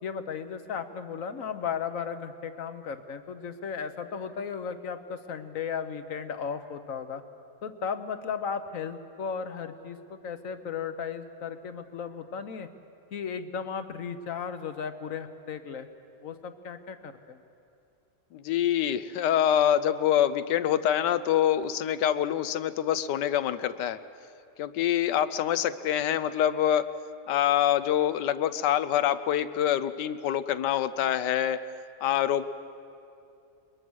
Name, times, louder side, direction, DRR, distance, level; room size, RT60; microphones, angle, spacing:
voice 1, 0.0-7.2 7.6-12.7 13.1-15.9 16.2-17.4, left 6 dB, 55° left, 10 dB, 1.2 m, -35 dB
voice 2, 18.3-24.0 24.6-26.9 27.3-31.6 32.0-32.5, left 10 dB, 80° left, 12 dB, 1.3 m, -25 dB
22.0 x 21.5 x 6.3 m, 2.5 s
omnidirectional pair, 1.8 m